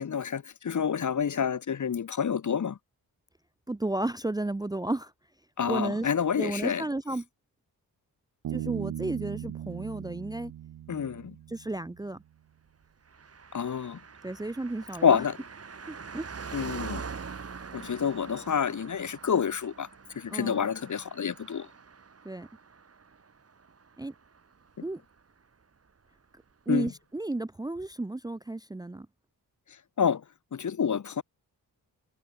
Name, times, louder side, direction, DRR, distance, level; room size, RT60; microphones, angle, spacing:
voice 1, 0.0-2.8 5.6-6.8 10.9-11.3 13.5-14.0 15.0-15.4 16.5-17.0 17.7-19.9 20.1-21.7 26.7-26.9 30.0-30.2 30.5-31.2, left 7 dB, 50° left, 1.3 m, -28 dB
voice 2, 3.7-5.1 5.6-6.1 6.4-7.2 8.5-10.5 11.5-12.2 14.2-15.2 15.9-16.3 20.3-20.7 22.2-22.5 24.0-24.1 24.8-25.0 26.7-29.1, right 2 dB, 10° right, 0.6 m, -33 dB
Bass guitar, 8.4-11.9, right 11 dB, 70° right, 0.9 m, -38 dB
Car passing by, 13.1-24.9 25.2-25.3, right 5 dB, 40° right, 1.8 m, -44 dB
cardioid pair, 60°, 38 cm